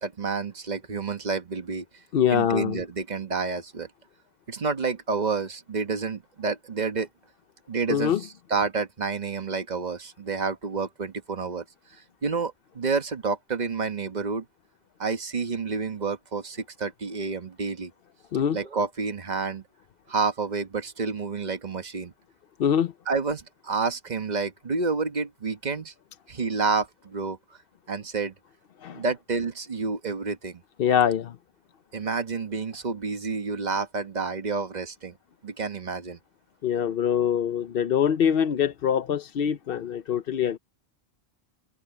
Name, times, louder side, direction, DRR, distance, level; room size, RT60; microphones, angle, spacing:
voice 1, 0.0-1.8 2.3-3.9 4.5-7.1 7.7-11.6 12.2-14.4 15.0-17.9 18.5-19.6 20.1-22.1 23.1-25.9 26.3-27.4 27.9-28.3 28.9-30.6 31.9-35.1 35.4-36.2, right 4 dB, 45° right, 1.3 m, -29 dB
voice 2, 2.1-2.8 7.9-8.2 18.3-18.6 22.6-22.9 28.8-29.0 30.8-31.3 36.6-40.6, left 8 dB, 65° left, 0.9 m, -24 dB
open air
omnidirectional pair, 1.1 m